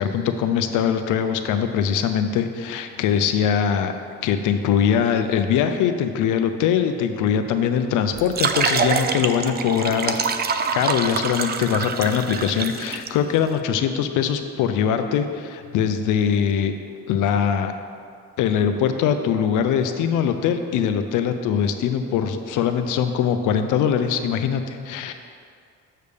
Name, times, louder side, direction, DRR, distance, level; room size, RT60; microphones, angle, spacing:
voice 1, 0.0-3.9 4.2-10.2 10.7-16.7 17.1-17.7 18.4-25.1, left 8 dB, 90° left, 8 dB, 0.5 m, -22 dB
sound 1, 8.1-13.1, right 5 dB, 35° right, 0.4 m, -25 dB
6.7 x 6.6 x 3.4 m, 2.3 s
cardioid pair, 90°, 30 cm